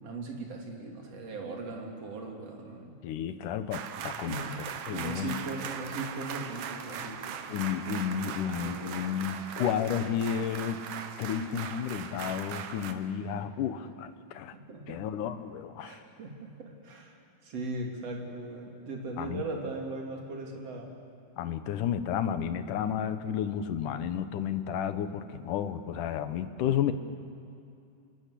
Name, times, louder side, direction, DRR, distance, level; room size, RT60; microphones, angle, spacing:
voice 1, 0.0-3.0 4.0-7.6 7.9-9.1 14.5-15.2 15.8-17.2 17.4-20.9, right 2 dB, 50° right, 0 dB, 4.0 m, -39 dB
voice 2, 3.0-4.5 4.9-5.4 7.5-10.8 11.2-14.6 14.9-16.0 19.2-19.5 21.4-26.9, left 9 dB, 85° left, 10 dB, 2.6 m, -32 dB
sound 1, 3.7-12.9, right 8 dB, 85° right, 2.8 m, -40 dB
28.0 x 19.5 x 8.4 m, 2.6 s
omnidirectional pair, 3.6 m